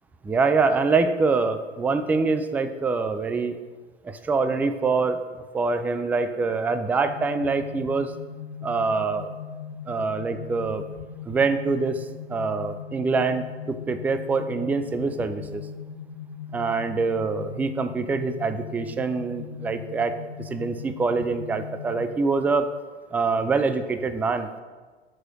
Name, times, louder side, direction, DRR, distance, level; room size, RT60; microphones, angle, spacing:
voice 1, 0.2-3.6 4.0-5.2 5.5-8.1 8.6-9.3 9.9-10.8 11.2-15.6 16.5-22.7 23.1-24.5, right 4 dB, 5° right, 10 dB, 0.3 m, -25 dB
sound 1, 7.1-22.1, left 7 dB, 80° left, 1.4 m, -39 dB
11.5 x 4.9 x 6.0 m, 1.4 s
figure-of-eight pair, 85°, 32 cm